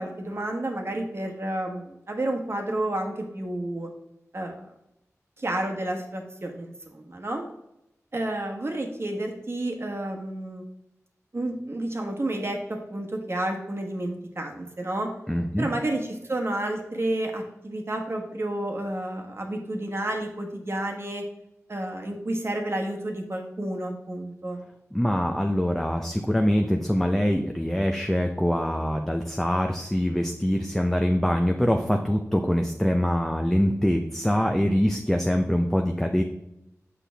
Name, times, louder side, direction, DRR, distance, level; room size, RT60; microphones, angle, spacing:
voice 1, 0.0-3.9 4.3-4.6 5.4-7.4 8.1-10.6 11.3-15.1 15.6-21.2 21.7-24.6, right 1 dB, 50° right, 3 dB, 1.2 m, -30 dB
voice 2, 15.3-15.7 24.9-36.2, equal, 5° left, 3 dB, 0.6 m, -24 dB
6.5 x 5.7 x 3.4 m, 0.86 s
wide cardioid pair, 65°, 6 cm